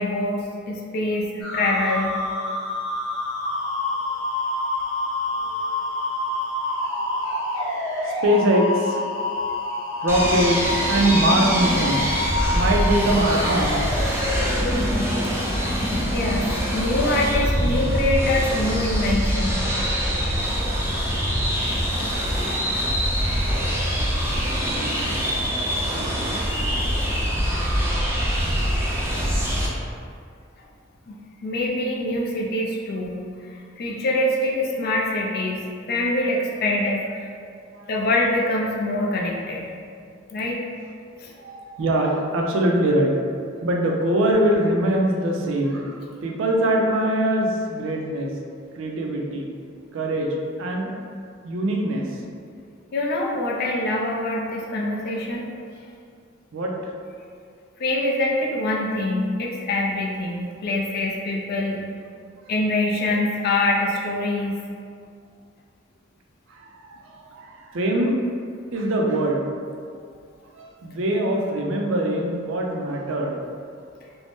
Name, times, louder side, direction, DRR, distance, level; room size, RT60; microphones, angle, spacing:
voice 1, 0.0-2.1 14.5-14.9 16.1-19.6 31.1-37.3 37.9-39.7 40.3-40.6 41.2-41.3 52.9-55.5 57.8-61.8 62.5-64.6, left 1 dB, 50° left, -2 dB, 0.4 m, -24 dB
sound 1, 1.4-15.2, left 2 dB, 90° left, 0.8 m, -28 dB
voice 2, 7.0-7.7 8.0-9.0 10.0-12.1 12.5-13.9 37.7-37.9 41.4-43.2 43.6-48.3 48.8-49.5 49.9-50.9 51.4-52.1 56.5-56.9 66.5-68.2 68.7-69.4 70.5-73.4, right 1 dB, 75° right, 1 dB, 0.4 m, -23 dB
sound 2, 10.1-29.7, equal, 15° right, 0.4 m, -24 dB
2.6 x 2.0 x 3.4 m, 2.3 s
head